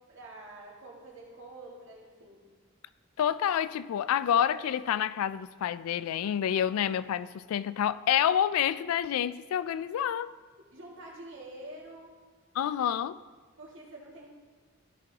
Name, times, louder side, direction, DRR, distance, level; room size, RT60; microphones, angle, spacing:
voice 1, 0.1-2.4 10.7-12.1 13.6-14.3, right 1 dB, 60° right, 1.9 m, -47 dB
voice 2, 3.2-10.3 12.6-13.2, left 9 dB, 85° left, 0.3 m, -28 dB
14.0 x 5.2 x 2.8 m
head